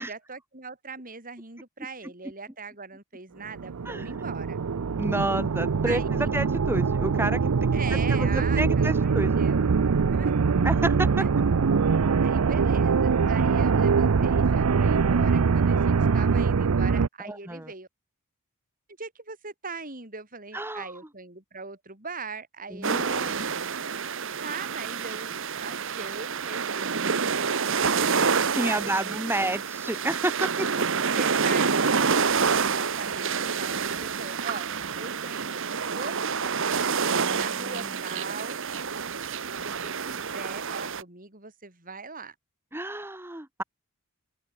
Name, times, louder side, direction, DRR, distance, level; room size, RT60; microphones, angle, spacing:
voice 1, 0.0-4.6 5.8-6.4 7.7-9.7 10.1-10.3 11.2-11.3 12.2-17.9 19.0-23.6 24.4-29.2 29.4-29.5 31.1-36.9 37.3-38.6 39.5-42.3, right 4 dB, 40° right, 5.6 m, -40 dB
sound 1, 3.5-17.1, right 5 dB, 90° right, 0.6 m, -23 dB
voice 2, 5.0-9.3 10.6-11.3 17.2-17.7 20.5-20.9 22.7-23.5 28.5-30.7 37.2-37.9 42.7-43.6, right 1 dB, 10° right, 1.7 m, -30 dB
sound 2, 22.8-41.0, right 5 dB, 60° right, 1.2 m, -28 dB
open air
head